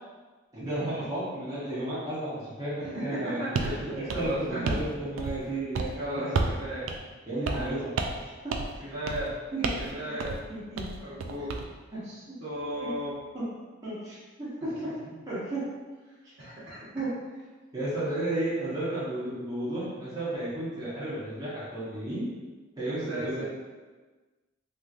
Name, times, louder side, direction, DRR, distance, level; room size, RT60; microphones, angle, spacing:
voice 1, 0.5-3.4 3.8-6.3 7.3-7.9 8.4-8.6 9.5-9.7 10.5-10.9 11.3-11.4 11.9-12.4 12.8-12.9 13.3-13.4 13.8-14.9 15.3-15.7 16.9-17.1 17.7-22.3 22.8-23.4, right 1 dB, 20° right, -11 dB, 1.0 m, -33 dB
voice 2, 2.8-4.8 5.9-6.9 7.5-7.8 8.8-9.3 9.8-10.4 11.0-11.5 12.0-13.1 15.0-15.1 16.4-17.0 22.9-23.4, equal, 70° right, -10 dB, 1.2 m, -36 dB
sound 1, 3.6-3.8 4.1-4.9 5.2-5.5 5.7-5.9 6.4-6.6 6.9-7.0 7.5-7.7 8.0-8.2 8.5-8.8 9.1-9.3 9.6-9.9 10.2-10.4 10.8-11.6, right 3 dB, 90° right, 0.3 m, -30 dB
3.5 x 2.9 x 2.5 m, 1.3 s
head